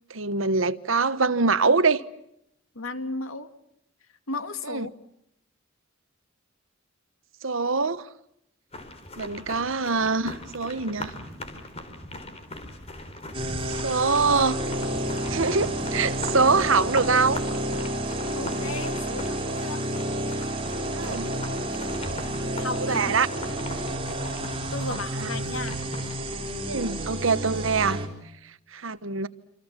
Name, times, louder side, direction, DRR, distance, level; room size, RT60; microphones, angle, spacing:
voice 1, 0.1-2.0 4.6-4.9 7.4-8.1 9.2-11.1 13.7-14.6 15.3-17.4 20.9-21.3 22.8-23.3 25.2-25.3 26.7-28.0 28.7-29.3, right 4 dB, 70° right, 1.2 m, -24 dB
voice 2, 2.8-3.5 4.3-4.9 18.3-19.8 22.6-23.2 24.7-25.8, left 2 dB, 85° left, 2.2 m, -34 dB
sound 1, 8.7-26.3, left 1 dB, 30° left, 4.1 m, -39 dB
sound 2, 13.3-28.1, right 1 dB, 25° right, 4.1 m, -30 dB
28.0 x 27.0 x 7.5 m
head